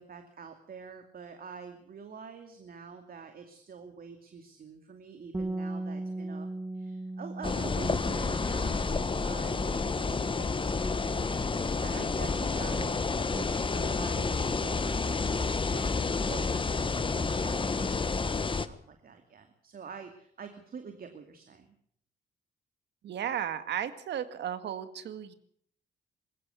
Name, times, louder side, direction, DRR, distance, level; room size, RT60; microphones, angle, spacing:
voice 1, 0.0-6.5 6.7-13.0 13.3-21.7, right 6 dB, 55° right, 6 dB, 2.5 m, -46 dB
Bass guitar, 5.3-11.6, right 2 dB, 15° right, 1.2 m, -39 dB
sound 1, 7.4-18.7, left 4 dB, 30° left, 1.3 m, -30 dB
voice 2, 23.0-25.3, right 9 dB, 85° right, 11 dB, 1.9 m, -34 dB
21.0 x 16.0 x 8.2 m, 0.64 s
cardioid pair, 85°, 18 cm